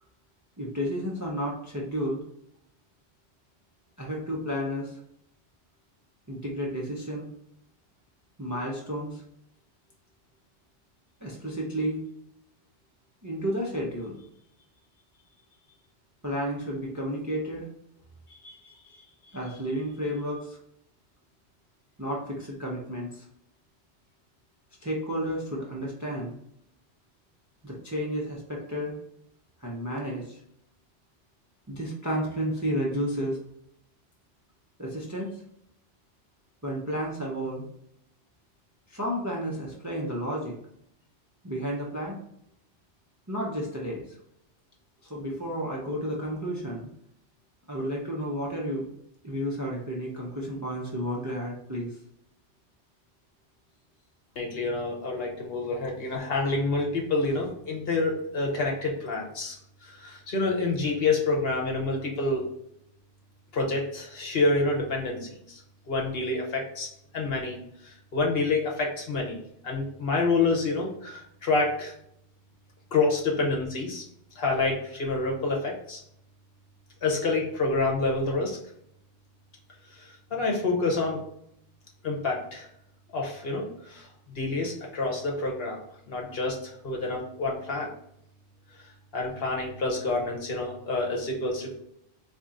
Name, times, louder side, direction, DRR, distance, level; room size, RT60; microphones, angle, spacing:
voice 1, 0.6-2.2 4.0-5.0 6.3-7.3 8.4-9.2 11.2-12.0 13.2-14.3 16.2-17.6 18.3-20.6 22.0-23.2 24.8-26.3 27.6-29.0 29.6-30.4 31.7-33.4 34.8-35.3 36.6-37.7 38.9-40.6 41.4-42.2 43.3-44.2 45.1-46.9 47.7-48.9 49.2-52.0, equal, 20° right, -3 dB, 0.5 m, -32 dB
voice 2, 54.4-59.6 59.8-62.4 63.5-65.6 65.9-67.6 67.8-69.4 69.6-71.9 72.9-74.0 74.4-76.0 77.0-78.6 80.0-81.2 82.0-82.7 83.1-85.8 86.1-87.9 89.1-91.7, left 3 dB, 60° left, -1 dB, 1.0 m, -28 dB
4.1 x 2.9 x 2.4 m, 0.74 s
omnidirectional pair, 1.2 m